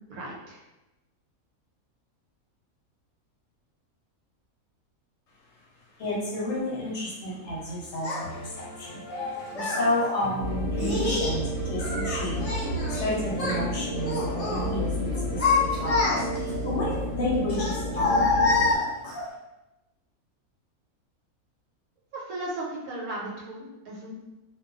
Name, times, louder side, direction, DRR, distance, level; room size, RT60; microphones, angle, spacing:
voice 1, 0.1-0.6 22.1-24.1, right 1 dB, 85° right, -3 dB, 1.1 m, -36 dB
voice 2, 6.0-9.0 9.5-12.4 12.9-18.7, left 1 dB, 65° left, -5 dB, 0.8 m, -31 dB
Child speech kid speaking, 8.0-8.2 9.1-9.8 10.8-11.4 11.8-13.0 13.3-13.6 14.0-14.6 15.1-16.5 17.5-19.2, left 3 dB, 30° left, 0.9 m, -26 dB
sound 1, 8.2-16.4, left 2 dB, 90° left, 1.1 m, -41 dB
sound 2, 10.4-18.7, equal, 70° right, 0.9 m, -31 dB
2.4 x 2.2 x 2.4 m, 1.0 s
omnidirectional pair, 1.5 m